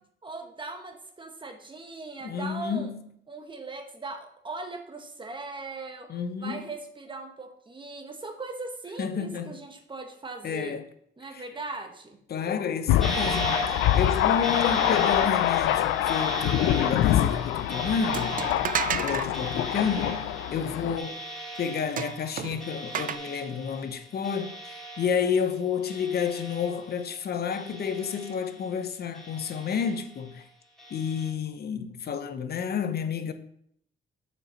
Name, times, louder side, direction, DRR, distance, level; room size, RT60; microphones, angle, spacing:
voice 1, 0.2-2.9 3.3-10.8 11.2-12.2, right 3 dB, 25° right, 1.3 m, -39 dB
voice 2, 2.2-3.0 6.1-6.7 9.0-9.6 10.4-10.8 11.3-11.5 12.3-18.4 19.0-21.2 21.6-30.5 30.9-33.3, left 7 dB, 55° left, 0.8 m, -30 dB
Thunder, 12.9-21.0, left 12 dB, 85° left, 0.4 m, -25 dB
sound 1, 13.0-25.6 25.9-27.1 27.5-28.7 29.1-30.2 30.8-31.3, right 1 dB, ahead, 2.4 m, -37 dB
sound 2, 18.1-19.3 22.0-23.2, right 9 dB, 45° right, 0.4 m, -31 dB
6.6 x 5.2 x 4.4 m
cardioid pair, 90°, 20 cm